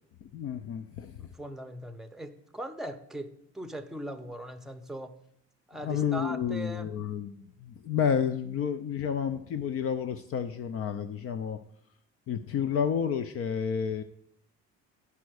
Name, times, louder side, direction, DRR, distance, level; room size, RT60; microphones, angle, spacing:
voice 1, 0.2-1.3 5.8-11.6 12.3-14.0, left 7 dB, 50° left, 10 dB, 0.6 m, -30 dB
voice 2, 1.2-5.1 5.7-6.9, right 1 dB, ahead, 6 dB, 0.7 m, -40 dB
9.6 x 5.7 x 6.3 m, 0.70 s
cardioid pair, 120°, 30 cm